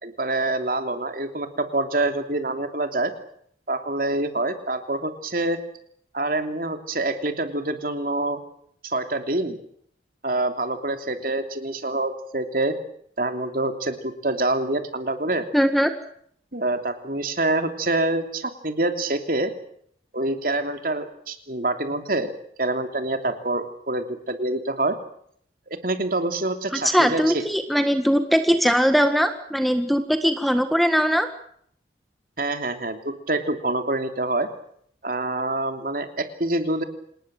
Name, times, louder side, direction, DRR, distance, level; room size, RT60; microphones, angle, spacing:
voice 1, 0.0-3.1 3.7-5.6 6.1-8.4 8.8-9.6 10.2-12.7 13.2-15.5 16.5-19.5 20.1-22.3 22.6-25.0 25.7-27.4 32.4-34.5 35.0-36.8, right 2 dB, 50° right, 7 dB, 3.1 m, -26 dB
voice 2, 15.5-15.9 26.8-31.3, equal, ahead, 8 dB, 1.6 m, -20 dB
27.5 x 19.5 x 7.8 m, 0.65 s
head